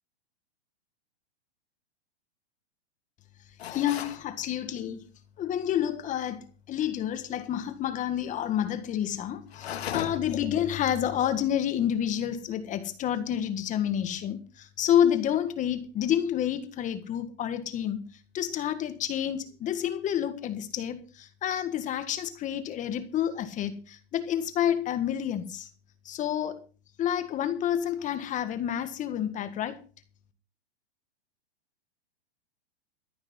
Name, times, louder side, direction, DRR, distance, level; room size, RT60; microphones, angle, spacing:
sound 1, 3.6-4.2 9.5-10.4, left 9 dB, 70° left, 2.2 m, -36 dB
voice 1, 3.7-5.0 5.4-6.4 6.7-18.1 18.3-25.7 26.0-26.6 27.0-29.8, left 10 dB, 25° left, 1.6 m, -29 dB
14.5 x 8.8 x 5.6 m
hypercardioid pair, 135°, 32 cm